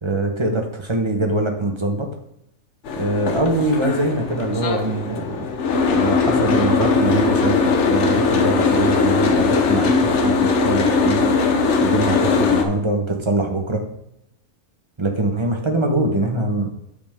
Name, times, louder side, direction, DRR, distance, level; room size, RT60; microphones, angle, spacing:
voice 1, 0.0-2.1 3.0-5.4 5.9-11.3 11.8-13.8 15.0-16.7, right 2 dB, 20° right, 3 dB, 1.0 m, -23 dB
Boat Water vehicle, 2.9-12.6, left 4 dB, 55° left, 1.2 m, -19 dB
8.6 x 7.1 x 3.5 m, 0.79 s
omnidirectional pair, 1.5 m